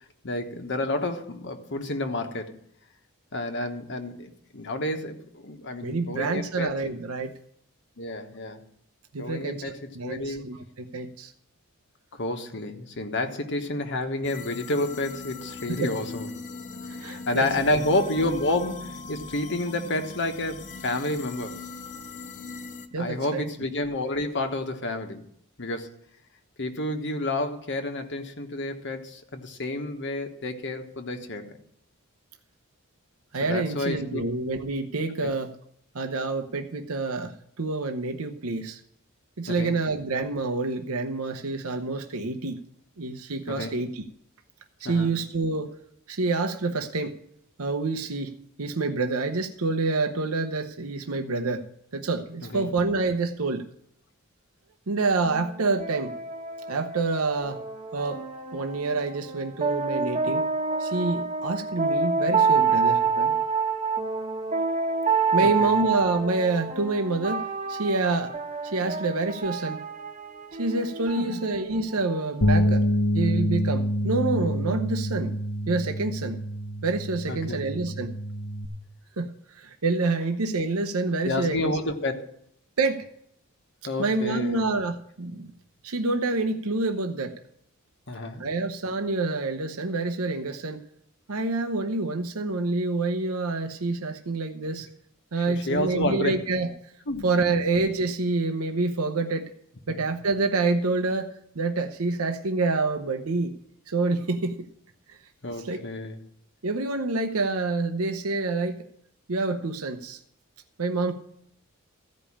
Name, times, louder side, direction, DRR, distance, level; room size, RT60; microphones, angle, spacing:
voice 1, 0.2-2.5 3.3-6.7 8.0-8.6 9.2-10.4 12.1-16.3 16.9-21.6 23.0-25.2 25.6-25.9 26.6-31.5 33.4-34.2 35.2-35.3 39.5-39.7 43.5-43.8 44.8-45.1 52.5-52.7 63.2-63.3 65.4-65.8 71.2-71.5 77.3-77.7 81.2-82.2 83.8-84.6 88.1-88.4 94.7-94.8 95.5-96.4 97.1-97.3 99.9-100.0 105.4-106.2, left 2 dB, 55° left, 5 dB, 1.3 m, -30 dB
voice 2, 5.8-7.3 9.1-11.3 15.7-15.9 17.0-17.8 22.9-23.5 33.3-35.5 35.9-38.8 39.4-42.6 43.0-44.0 44.8-45.7 46.1-47.1 47.6-48.3 48.6-51.7 51.9-53.6 54.9-56.1 56.7-57.6 57.9-58.2 58.5-60.4 60.8-63.0 65.3-68.4 68.6-69.8 70.6-72.9 73.1-75.3 75.7-76.4 76.8-78.1 79.2-81.8 82.8-83.0 84.0-85.5 85.8-87.4 88.4-90.8 91.3-94.9 95.3-96.7 97.2-99.5 99.9-103.5 103.9-104.5 105.1-105.2 105.6-105.8 106.6-108.8 109.3-110.2 110.8-111.1, right 3 dB, 75° right, 6 dB, 0.9 m, -27 dB
sound 1, 14.2-22.9, left 3 dB, 35° left, 0.7 m, -40 dB
sound 2, 55.2-72.7, right 5 dB, 30° right, 1.1 m, -28 dB
sound 3, 72.4-78.7, equal, 70° left, 1.0 m, -26 dB
14.5 x 5.3 x 8.6 m, 0.71 s
head